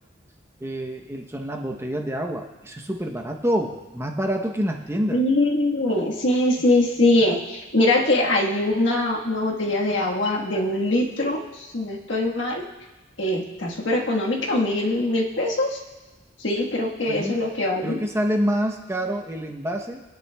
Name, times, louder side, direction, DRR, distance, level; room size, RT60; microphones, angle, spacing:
voice 1, 0.6-5.2 17.1-17.4 17.8-20.0, equal, 15° right, 2 dB, 0.8 m, -27 dB
voice 2, 5.1-12.6 13.2-15.8 16.4-18.0, left 1 dB, 75° left, -1 dB, 1.4 m, -22 dB
25.5 x 9.6 x 2.3 m, 1.1 s
head